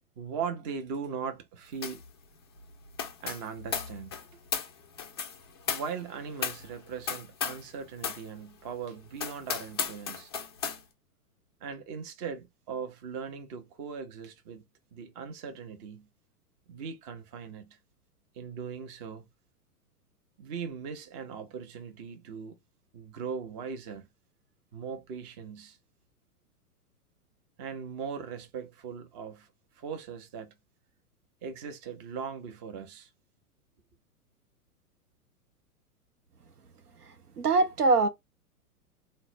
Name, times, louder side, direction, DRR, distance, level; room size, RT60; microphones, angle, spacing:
voice 1, 0.2-2.0 3.2-4.2 5.7-10.3 11.6-14.6 14.9-16.1 16.7-17.8 18.3-19.2 20.4-22.6 22.9-24.1 24.7-25.8 27.6-29.5 29.7-30.5 31.4-33.1, right 6 dB, 30° right, 0.6 m, -39 dB
sound 1, 1.8-2.1 2.3-7.7 8.0-8.3 8.7-8.8 9.2-10.8, left 6 dB, 20° left, 0.3 m, -35 dB
voice 2, 37.4-38.1, right 3 dB, 80° right, 0.8 m, -22 dB
3.9 x 2.2 x 4.1 m
figure-of-eight pair, 105°, 46 cm